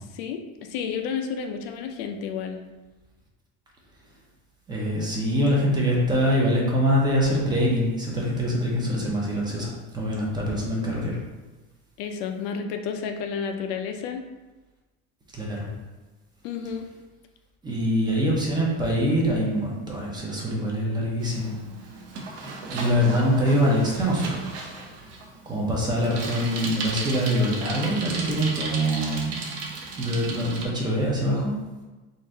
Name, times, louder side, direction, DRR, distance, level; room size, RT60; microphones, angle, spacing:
voice 1, 0.1-2.6 12.0-14.2 16.4-16.8, left 6 dB, 70° left, 5 dB, 0.6 m, -31 dB
voice 2, 4.7-11.2 15.3-15.7 17.6-21.5 22.7-24.4 25.5-29.3 30.0-31.5, equal, 15° right, -3 dB, 0.6 m, -24 dB
Bicycle, 21.2-30.6, right 3 dB, 50° right, 0.8 m, -35 dB
3.8 x 2.5 x 4.3 m, 1.2 s
cardioid pair, 175°, 32 cm